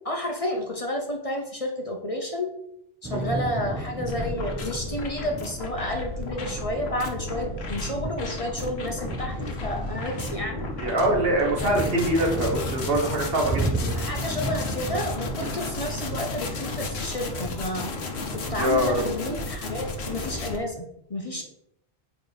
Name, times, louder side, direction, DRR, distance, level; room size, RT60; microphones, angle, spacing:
voice 1, 0.0-2.5 3.0-10.6 11.6-11.8 13.9-17.9 18.3-20.8 21.1-21.4, left 1 dB, 35° left, 2 dB, 0.9 m, -31 dB
Thunder / Rain, 3.0-19.2, right 1 dB, 20° right, 0.4 m, -35 dB
sound 1, 4.0-20.6, left 2 dB, 75° left, 1.2 m, -33 dB
voice 2, 10.8-13.9 15.4-15.5 18.6-19.4, right 1 dB, 65° right, 1 dB, 1.5 m, -24 dB
8.7 x 3.4 x 4.1 m, 0.76 s
omnidirectional pair, 1.1 m